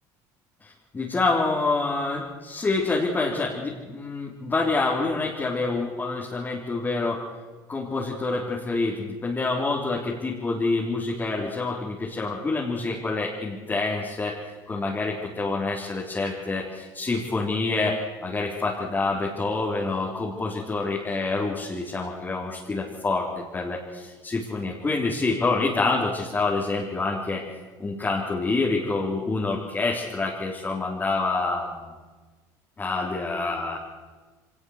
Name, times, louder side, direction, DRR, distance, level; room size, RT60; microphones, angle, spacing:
voice 1, 0.6-7.2 7.7-14.4 14.7-27.4 27.8-31.9 32.8-33.8, left 3 dB, 20° left, -4 dB, 3.8 m, -27 dB
24.5 x 19.5 x 6.6 m, 1.3 s
cardioid pair, 110°, 9 cm